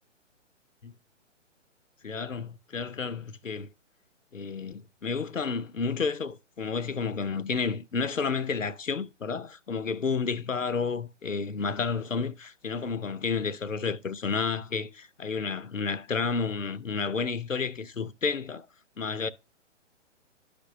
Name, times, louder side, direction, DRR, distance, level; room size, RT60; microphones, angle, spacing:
voice 1, 2.0-3.7 4.3-18.7 19.0-19.3, left 5 dB, 85° left, 0.7 m, -31 dB
11.5 x 5.2 x 2.6 m
figure-of-eight pair, 130°, 37 cm